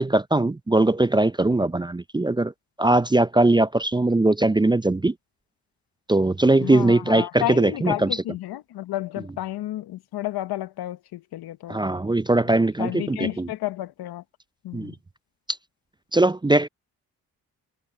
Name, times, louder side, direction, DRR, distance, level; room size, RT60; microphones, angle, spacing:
voice 1, 0.0-2.5 2.8-5.1 6.1-8.1 11.7-13.5 14.7-14.9 16.1-16.7, right 2 dB, 10° right, 0.5 m, -20 dB
voice 2, 6.6-11.8 12.8-14.2 14.6-15.0, left 14 dB, 75° left, 1.0 m, -31 dB
supercardioid pair, 50°, 38 cm